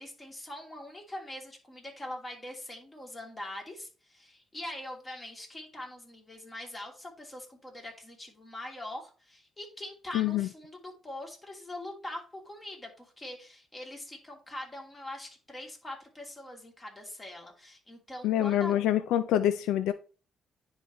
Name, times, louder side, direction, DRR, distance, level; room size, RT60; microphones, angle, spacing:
voice 1, 0.0-18.7, left 1 dB, 20° left, 2.9 m, -43 dB
voice 2, 10.1-10.5 18.2-19.9, left 12 dB, 90° left, 0.4 m, -26 dB
10.0 x 4.1 x 3.1 m
cardioid pair, 90°, 0 cm